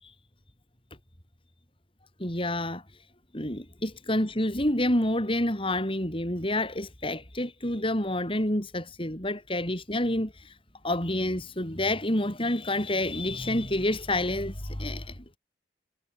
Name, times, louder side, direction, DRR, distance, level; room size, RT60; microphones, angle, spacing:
voice 1, 2.2-2.8 3.3-10.5 10.8-15.4, left 1 dB, 30° left, 7.6 m, -28 dB
head